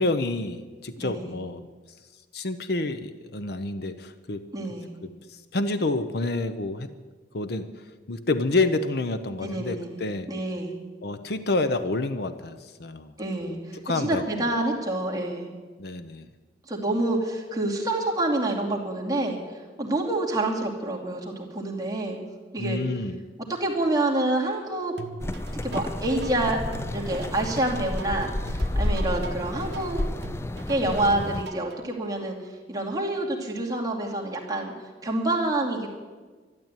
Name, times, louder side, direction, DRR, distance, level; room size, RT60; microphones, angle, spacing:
voice 1, 0.0-1.6 2.3-4.5 5.0-6.9 7.3-7.7 8.1-10.3 11.0-13.1 13.4-13.6 13.8-14.2 15.8-16.3 22.6-23.2, left 2 dB, 65° left, 10 dB, 0.8 m, -28 dB
voice 2, 1.0-1.3 4.5-4.9 9.4-10.0 10.3-10.8 13.2-15.5 16.7-22.2 22.5-22.8 23.6-24.9 25.6-26.6 26.9-30.0 30.7-32.4 32.7-34.7 35.0-35.9, right 2 dB, 20° right, -2 dB, 2.6 m, -27 dB
sound 1, 25.0-31.8, right 2 dB, 70° right, 1.2 m, -42 dB
sound 2, 25.2-31.4, left 1 dB, 15° left, 0.4 m, -30 dB
12.0 x 12.0 x 9.0 m, 1.4 s
head